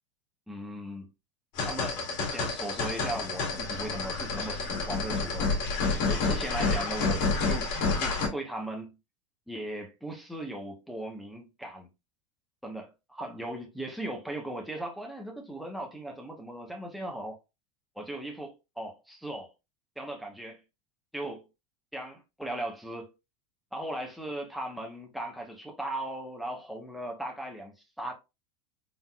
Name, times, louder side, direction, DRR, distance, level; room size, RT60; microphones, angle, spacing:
voice 1, 0.5-1.1 1.6-2.0 2.3-5.5 6.1-9.0 9.5-11.9 12.6-17.4 17.9-19.5 20.0-20.6 21.1-21.5 21.9-23.1 23.7-28.1, right 1 dB, ahead, 1.1 m, -38 dB
sound 1, 1.6-8.3, left 3 dB, 50° left, 2.0 m, -29 dB
4.0 x 3.8 x 2.4 m
supercardioid pair, 125°, 16 cm